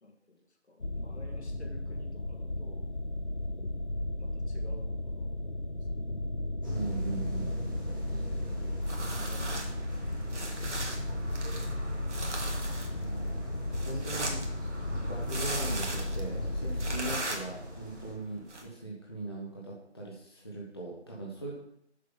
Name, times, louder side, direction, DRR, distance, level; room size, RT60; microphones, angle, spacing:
voice 1, 0.0-2.9 4.2-5.7 6.0-6.2 8.1-8.6 8.9-9.6 10.9-11.7, left 1 dB, 70° left, 1 dB, 2.0 m, -53 dB
sound 1, 0.8-17.2, left 1 dB, 45° left, 0.5 m, -35 dB
voice 2, 6.6-7.5 12.9-13.5 13.8-14.4 15.1-21.6, right 2 dB, 20° left, -4 dB, 0.8 m, -40 dB
sound 2, 6.6-18.1, equal, 20° right, 1.1 m, -43 dB
sound 3, 8.8-18.6, right 2 dB, 80° right, 1.8 m, -40 dB
6.7 x 5.4 x 5.4 m, 0.71 s
figure-of-eight pair, 170°, 35 cm